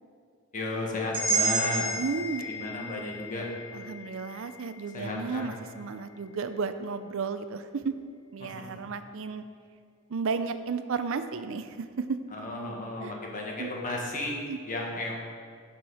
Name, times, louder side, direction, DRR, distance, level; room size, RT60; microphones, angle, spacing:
voice 1, 0.5-1.9 2.4-3.5 4.9-5.5 8.4-8.8 12.3-14.3 14.6-15.2, left 2 dB, 40° left, -1 dB, 1.6 m, -34 dB
sound 1, 1.1-5.2, right 3 dB, 25° right, 2.5 m, -32 dB
voice 2, 2.0-2.5 3.7-7.9 8.3-9.4 10.1-12.3 13.0-13.1 13.6-13.8 14.5-14.6, right 5 dB, 65° right, 10 dB, 0.5 m, -33 dB
11.5 x 6.0 x 4.9 m, 2.1 s
head